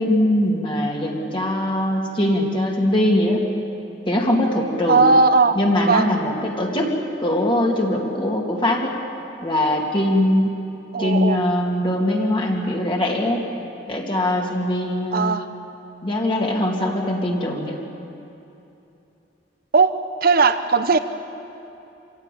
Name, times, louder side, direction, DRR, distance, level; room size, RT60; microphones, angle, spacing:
voice 1, 0.0-3.4 4.1-5.1 5.5-6.9 7.2-9.0 9.4-10.6 11.0-13.4 13.9-15.3 16.0-17.8, left 1 dB, 30° left, -1 dB, 2.7 m, -21 dB
voice 2, 4.9-5.6 5.8-6.1 10.9-11.4 15.1-15.5 19.7-21.0, right 4 dB, 55° right, 10 dB, 0.8 m, -17 dB
26.5 x 16.5 x 8.6 m, 2.8 s
head